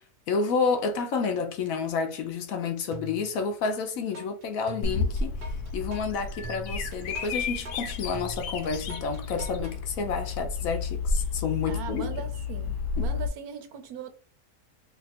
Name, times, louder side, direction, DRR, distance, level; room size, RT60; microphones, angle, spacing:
voice 1, 0.3-5.3 5.7-12.1 13.0-13.1, left 5 dB, 70° left, 0.9 m, -30 dB
sound 1, 2.9-3.8 4.1-9.8, equal, 55° right, 0.5 m, -43 dB
Bird vocalization bird call bird song, 4.8-13.3, left 4 dB, 90° left, 1.1 m, -31 dB
voice 2, 11.7-14.1, right 7 dB, 75° right, 1.2 m, -39 dB
2.9 x 2.4 x 4.0 m
omnidirectional pair, 1.6 m